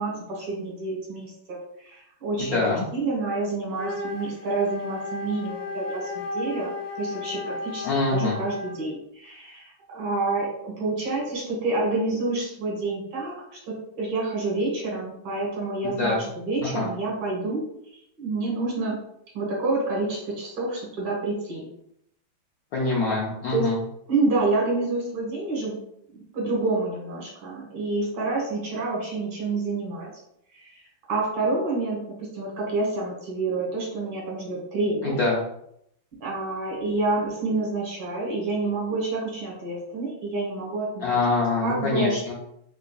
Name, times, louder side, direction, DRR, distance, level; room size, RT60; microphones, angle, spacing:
voice 1, 0.0-17.6 18.2-19.0 19.3-21.7 23.5-23.7 24.1-25.7 26.1-30.1 30.5-30.7 31.1-35.2 36.2-41.1 41.6-42.2, right 3 dB, 80° right, -3 dB, 2.1 m, -28 dB
voice 2, 2.4-2.9 7.8-8.4 15.8-16.2 16.6-16.9 22.7-23.8 35.0-35.4 41.0-42.3, left 3 dB, 75° left, -4 dB, 0.8 m, -24 dB
Wind instrument woodwind instrument, 3.7-8.9, left 2 dB, 15° right, 0.8 m, -34 dB
4.5 x 2.6 x 2.3 m, 0.76 s
omnidirectional pair, 2.2 m